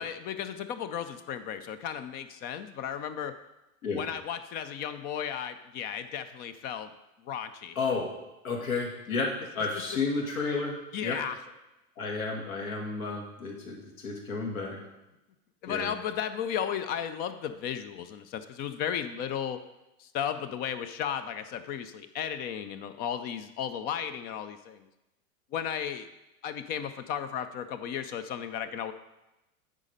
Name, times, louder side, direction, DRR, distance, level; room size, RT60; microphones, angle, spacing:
voice 1, 0.0-3.3 3.9-6.9 7.2-7.8 10.9-11.4 15.6-19.6 20.0-24.8 25.5-26.1 26.4-28.9, left 8 dB, 25° left, 11 dB, 0.3 m, -34 dB
voice 2, 7.8-8.1 8.4-9.3 9.6-11.2 12.0-14.8 15.7-15.9, left 4 dB, 75° left, 0 dB, 2.2 m, -32 dB
8.3 x 5.1 x 5.2 m, 0.95 s
hypercardioid pair, 105°, 42 cm